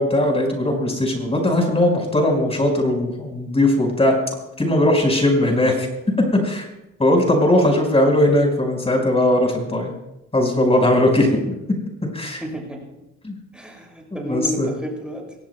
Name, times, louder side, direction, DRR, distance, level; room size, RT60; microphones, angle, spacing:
voice 1, 0.0-4.1 4.6-5.9 6.3-6.7 7.0-9.9 10.3-11.6 12.1-12.4 13.2-13.3 14.1-14.7, left 1 dB, 20° left, 2 dB, 4.8 m, -19 dB
voice 2, 12.2-13.0 13.5-15.4, equal, 5° right, -1 dB, 6.7 m, -31 dB
24.0 x 17.5 x 2.2 m, 0.91 s
cardioid pair, 90°, 30 cm